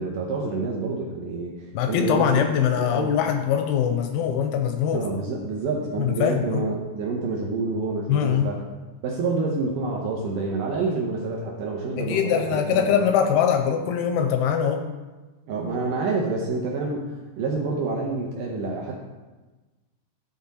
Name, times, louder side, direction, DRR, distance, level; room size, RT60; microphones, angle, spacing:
voice 1, 0.0-2.4 2.8-3.1 4.9-8.6 9.0-13.0 15.5-19.0, right 3 dB, 85° right, -1 dB, 1.9 m, -28 dB
voice 2, 1.7-5.1 6.0-6.7 8.1-8.5 12.0-14.8, left 8 dB, 85° left, 6 dB, 2.3 m, -22 dB
12.5 x 4.2 x 4.1 m, 1.2 s
omnidirectional pair, 4.8 m